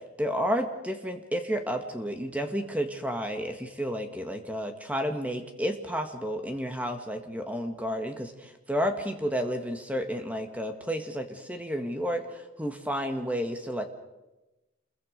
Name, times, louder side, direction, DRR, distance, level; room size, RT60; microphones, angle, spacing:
voice 1, 0.2-13.8, equal, 10° right, 5 dB, 1.7 m, -31 dB
28.0 x 22.0 x 5.3 m, 1.0 s
head